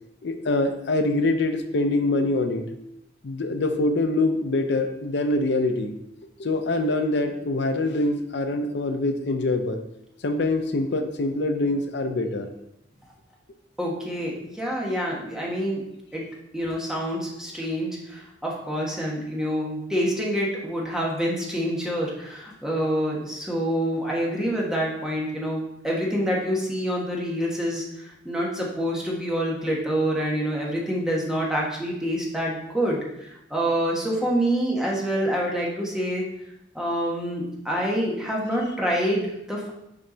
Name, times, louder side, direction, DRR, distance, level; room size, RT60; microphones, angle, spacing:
voice 1, 0.2-2.6 3.2-5.9 6.4-9.8 10.2-12.5 19.4-19.7, left 2 dB, 65° left, 7 dB, 0.6 m, -24 dB
voice 2, 13.8-15.8 16.1-16.2 16.5-36.2 36.7-39.7, equal, 5° right, -3 dB, 1.3 m, -27 dB
7.3 x 4.5 x 3.9 m, 0.84 s
head